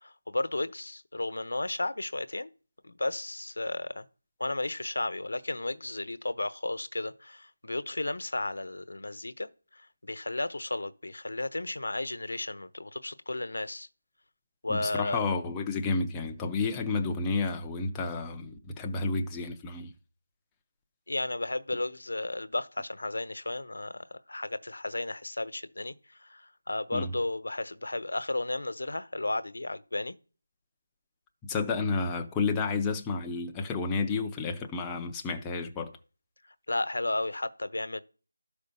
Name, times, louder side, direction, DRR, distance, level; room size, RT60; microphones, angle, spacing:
voice 1, 0.0-2.5 2.8-4.0 4.4-13.9 14.6-15.2 21.1-30.1 36.4-38.0, left 2 dB, 70° left, 1.0 m, -34 dB
voice 2, 14.7-19.9 26.9-27.1 31.4-35.9, left 4 dB, 5° left, 0.5 m, -31 dB
12.5 x 5.2 x 6.8 m
figure-of-eight pair, 180°, 0 cm